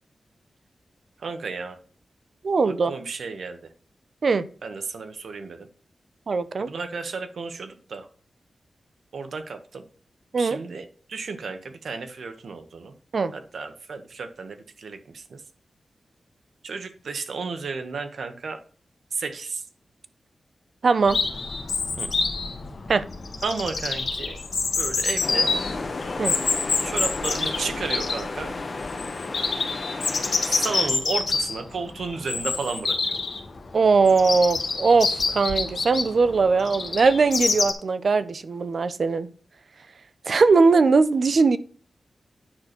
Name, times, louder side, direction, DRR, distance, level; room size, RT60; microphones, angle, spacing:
voice 1, 1.2-1.8 2.9-3.6 4.6-5.7 6.6-8.1 9.1-9.8 10.4-12.9 13.3-15.4 16.6-18.6 19.1-19.6 22.0-22.1 23.4-24.3 24.8-25.5 26.8-28.5 30.6-33.2, right 4 dB, 80° right, 1.4 m, -33 dB
voice 2, 2.4-2.9 4.2-4.5 6.3-6.7 10.3-10.6 13.1-13.3 20.8-21.2 22.9-23.0 26.2-26.3 33.7-39.3 40.3-41.6, right 4 dB, 60° right, 0.7 m, -20 dB
Chirp tweet, 21.1-37.7, left 4 dB, 65° left, 1.6 m, -27 dB
sound 1, 25.2-30.9, left 3 dB, 45° left, 1.4 m, -33 dB
9.6 x 4.4 x 6.6 m
wide cardioid pair, 125°, 0 cm